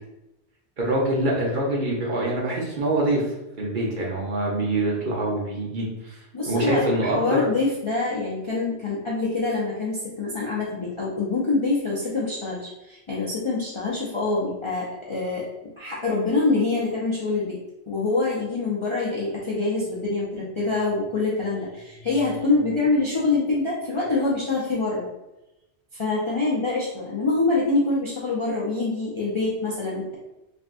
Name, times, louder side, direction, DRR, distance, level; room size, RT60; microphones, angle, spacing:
voice 1, 0.8-3.2 3.6-6.2 6.5-7.5, right 1 dB, 50° right, -3 dB, 0.8 m, -25 dB
voice 2, 6.3-15.4 15.8-17.6 17.9-25.1 26.0-30.2, left 3 dB, 40° left, -6 dB, 0.5 m, -25 dB
3.2 x 2.6 x 2.5 m, 0.94 s
omnidirectional pair, 1.2 m